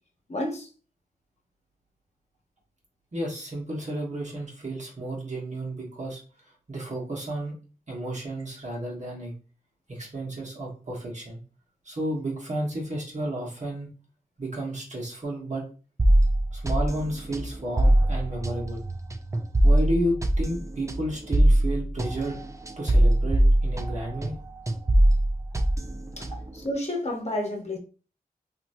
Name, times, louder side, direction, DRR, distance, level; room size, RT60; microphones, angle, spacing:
voice 1, 0.3-0.7 26.2-26.3 26.6-27.8, left 1 dB, 45° left, 1.0 m, -30 dB
voice 2, 3.1-6.2 6.7-7.5 7.9-9.3 9.9-11.4 11.8-13.9 14.4-15.6 16.5-18.8 19.6-22.4 22.8-24.3, right 1 dB, 50° right, 1.3 m, -32 dB
sound 1, 16.0-24.4 24.7-26.6, right 1 dB, 20° right, 0.4 m, -22 dB
3.0 x 2.9 x 2.6 m
wide cardioid pair, 75°, 15 cm